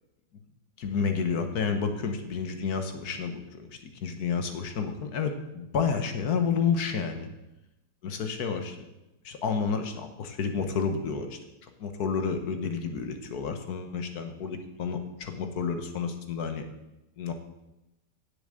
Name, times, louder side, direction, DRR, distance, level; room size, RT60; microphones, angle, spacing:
voice 1, 0.8-7.3 8.0-8.9 9.2-11.4 11.8-16.7 17.2-17.3, left 6 dB, 65° left, 7 dB, 1.5 m, -30 dB
7.8 x 7.0 x 7.5 m, 0.95 s
omnidirectional pair, 1.8 m